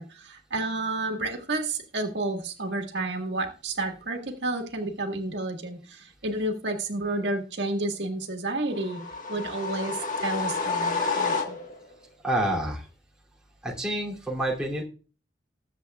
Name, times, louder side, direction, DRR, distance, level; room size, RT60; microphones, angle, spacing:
voice 1, 0.0-11.6, right 2 dB, 75° right, 3 dB, 1.6 m, -31 dB
sound 1, 8.7-11.9, left 4 dB, 45° left, 1.4 m, -29 dB
voice 2, 12.2-12.8 13.6-14.8, right 1 dB, 5° right, -4 dB, 2.7 m, -28 dB
20.0 x 7.5 x 2.3 m, 0.36 s
head